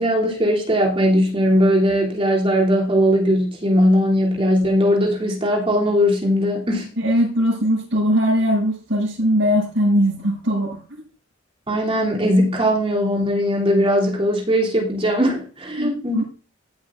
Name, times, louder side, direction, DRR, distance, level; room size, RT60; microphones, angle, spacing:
voice 1, 0.0-6.9 11.7-16.2, equal, 30° right, -2 dB, 3.1 m, -19 dB
voice 2, 7.0-10.8 15.8-16.2, equal, 80° right, -8 dB, 6.7 m, -20 dB
16.0 x 8.1 x 2.6 m, 0.34 s
head